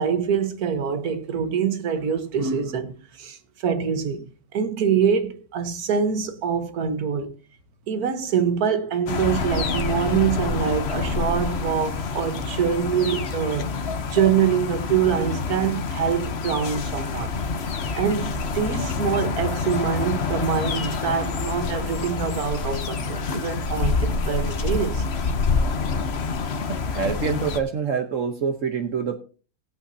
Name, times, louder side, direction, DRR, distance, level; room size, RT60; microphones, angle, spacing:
voice 1, 0.0-4.2 4.5-7.3 7.9-13.7 14.1-17.3 18.0-25.1, right 7 dB, 85° right, 1.7 m, -25 dB
sound 1, 9.1-27.6, left 4 dB, 50° left, 1.1 m, -27 dB
sound 2, 17.3-24.9, left 1 dB, 75° left, 2.2 m, -39 dB
voice 2, 26.7-29.2, right 6 dB, 60° right, 1.2 m, -26 dB
18.0 x 8.5 x 2.7 m
omnidirectional pair, 1.6 m